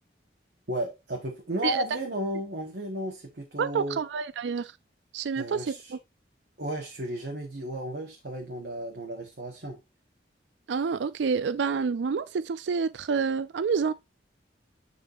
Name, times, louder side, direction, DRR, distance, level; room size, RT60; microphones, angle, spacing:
voice 1, 0.7-4.0 5.4-5.9 6.6-9.8, equal, 65° right, 1.4 m, -34 dB
voice 2, 3.6-4.7 5.1-6.0 10.7-13.9, right 5 dB, 90° right, 0.4 m, -28 dB
9.6 x 5.0 x 2.6 m
head